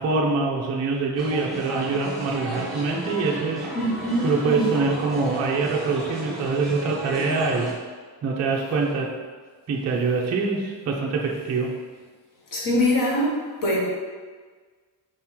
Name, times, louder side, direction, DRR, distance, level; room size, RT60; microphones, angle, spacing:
voice 1, 0.0-3.7 4.2-7.7 8.2-9.1 9.7-11.7, right 4 dB, 35° right, -1 dB, 0.4 m, -24 dB
sound 1, 1.2-7.7, right 1 dB, ahead, 1.2 m, -33 dB
voice 2, 3.7-4.7 12.5-13.3 13.6-13.9, left 1 dB, 40° left, -3 dB, 1.0 m, -23 dB
4.8 x 3.5 x 2.9 m, 1.5 s
wide cardioid pair, 170°, 49 cm